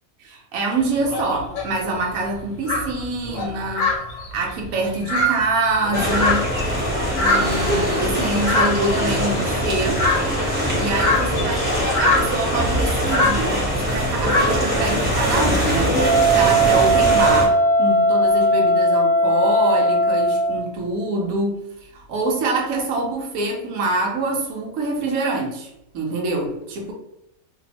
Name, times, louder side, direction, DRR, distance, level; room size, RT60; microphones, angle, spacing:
voice 1, 0.2-3.9 4.3-6.5 7.2-10.0 10.7-13.5 13.8-26.9, right 2 dB, 75° right, 0 dB, 1.1 m, -25 dB
sound 1, 0.8-1.7 2.3-2.4 2.7-6.8 7.1-13.8 14.2-14.8, left 2 dB, 65° left, 1.0 m, -24 dB
sound 2, 5.9-17.5, equal, 10° right, 0.8 m, -22 dB
Wind instrument woodwind instrument, 15.9-20.6, right 1 dB, 25° left, 0.6 m, -18 dB
2.8 x 2.0 x 2.7 m, 0.80 s
omnidirectional pair, 1.5 m